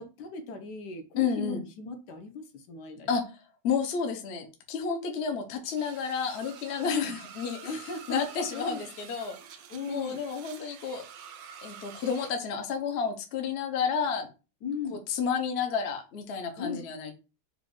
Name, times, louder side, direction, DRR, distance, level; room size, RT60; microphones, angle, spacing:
voice 1, 0.0-3.2 6.8-7.1 7.6-8.9 9.7-10.2 14.6-15.0 16.6-16.9, left 4 dB, 70° left, 6 dB, 1.3 m, -37 dB
voice 2, 1.2-1.6 3.1-3.2 3.6-7.7 8.1-9.3 9.9-11.0 11.6-14.3 14.9-17.1, left 6 dB, 55° left, 4 dB, 0.7 m, -31 dB
sound 1, 5.8-12.3, right 8 dB, 90° right, 1.4 m, -48 dB
5.0 x 2.4 x 3.7 m, 0.31 s
omnidirectional pair, 2.0 m